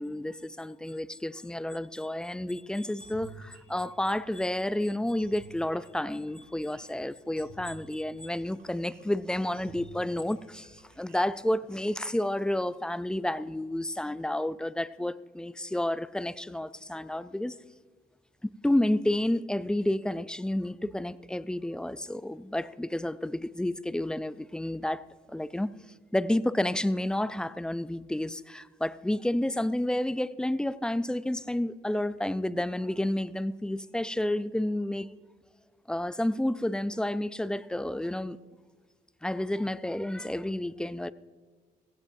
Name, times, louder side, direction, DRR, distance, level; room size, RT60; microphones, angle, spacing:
voice 1, 0.0-17.6 18.6-25.7 26.1-35.1 35.9-38.4 39.2-41.1, left 1 dB, 5° left, 0.4 m, -30 dB
sound 1, 3.0-11.7, right 3 dB, 55° right, 4.5 m, -52 dB
17.0 x 16.0 x 2.7 m
cardioid pair, 110°, 17 cm